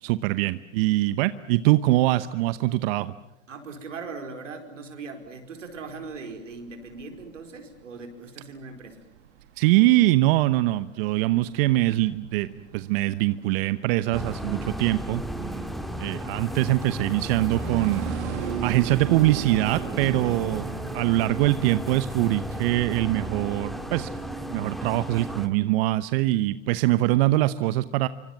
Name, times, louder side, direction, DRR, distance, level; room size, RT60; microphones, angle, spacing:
voice 1, 0.0-3.1 9.6-18.0 18.6-20.6 20.9-24.1 24.4-28.1, right 17 dB, 50° right, 14 dB, 1.0 m, -23 dB
voice 2, 3.5-9.0, right 4 dB, 85° right, 6 dB, 4.9 m, -39 dB
sound 1, 5.2-24.2, right 9 dB, 65° right, 2.2 m, -40 dB
sound 2, 14.1-25.5, equal, ahead, 2.1 m, -34 dB
27.5 x 25.0 x 7.4 m, 0.90 s
hypercardioid pair, 105°, 37 cm